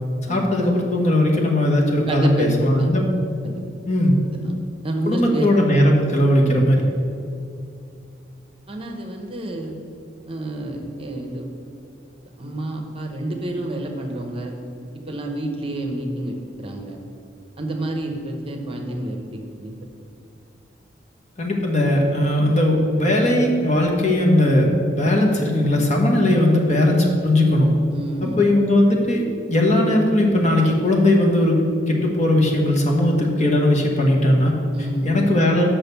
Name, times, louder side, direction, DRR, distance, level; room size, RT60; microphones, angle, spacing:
voice 1, 0.3-3.1 3.9-4.1 5.1-6.8 21.4-24.7 24.9-27.7 28.2-31.6 31.9-34.6 35.0-35.7, left 1 dB, 40° left, 0 dB, 1.2 m, -18 dB
voice 2, 2.1-2.5 2.8-2.9 3.4-3.6 4.3-4.5 4.8-5.5 8.7-9.7 10.3-11.5 12.4-14.5 15.1-17.0 17.6-19.7 27.9-28.4 34.7-35.1, right 1 dB, 30° right, 2 dB, 0.9 m, -29 dB
6.5 x 6.0 x 6.8 m, 2.6 s
head